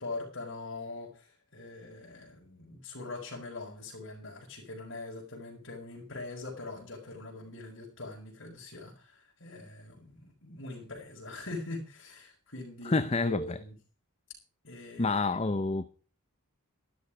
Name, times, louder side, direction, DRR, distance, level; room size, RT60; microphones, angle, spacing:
voice 1, 0.0-13.8 14.6-15.2, left 2 dB, 60° left, 5.3 m, -42 dB
voice 2, 12.8-13.6 15.0-15.9, left 3 dB, 30° left, 0.7 m, -28 dB
13.0 x 12.5 x 5.0 m
head